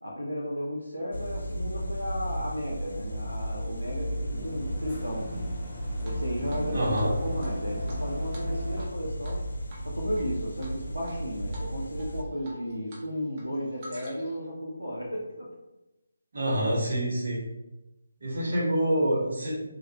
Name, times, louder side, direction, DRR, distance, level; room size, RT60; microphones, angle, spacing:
voice 1, 0.0-5.6 6.0-9.5 9.8-15.5, equal, 85° right, -3 dB, 0.5 m, -34 dB
sound 1, 1.1-12.2, equal, 60° left, 0.4 m, -34 dB
sound 2, 3.8-8.8, equal, 5° left, 0.8 m, -40 dB
Drip, 6.0-6.7 6.9-7.0 7.4-8.9 9.2-9.4 9.7-10.2 10.6-11.1 11.5-11.7 12.0-13.0 13.3-14.4, right 1 dB, 30° right, 0.6 m, -48 dB
voice 2, 6.7-7.1 16.3-17.5 18.2-19.6, right 1 dB, 50° right, -6 dB, 1.0 m, -26 dB
2.3 x 2.1 x 2.7 m, 1.0 s
figure-of-eight pair, 150°, 0 cm